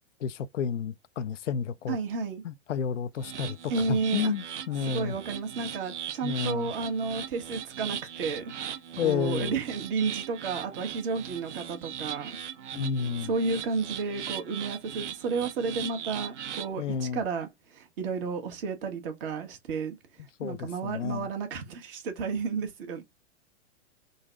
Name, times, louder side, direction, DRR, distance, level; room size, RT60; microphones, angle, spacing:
voice 1, 0.2-2.0 2.4-5.2 6.2-6.7 9.0-9.5 12.7-13.3 16.8-17.2 20.4-21.3, left 7 dB, 80° left, 0.5 m, -31 dB
voice 2, 1.9-2.4 3.7-4.3 4.9-8.5 9.0-12.3 13.2-19.9 20.4-23.0, right 5 dB, 50° right, 1.4 m, -32 dB
sound 1, 3.2-16.7, right 9 dB, 70° right, 0.8 m, -39 dB
3.9 x 2.2 x 3.7 m
figure-of-eight pair, 110°, 36 cm